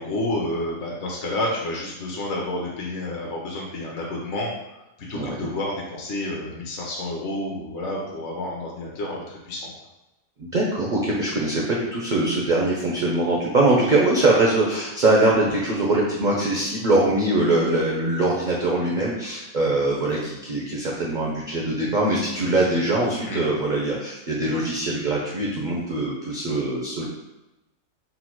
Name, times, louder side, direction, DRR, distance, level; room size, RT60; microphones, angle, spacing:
voice 1, 0.0-4.5 5.0-9.7 23.2-23.4, left 1 dB, 55° left, -3 dB, 0.9 m, -29 dB
voice 2, 5.1-5.5 10.4-27.1, right 2 dB, 65° right, -3 dB, 0.4 m, -22 dB
4.0 x 2.2 x 4.4 m, 0.97 s
omnidirectional pair, 1.7 m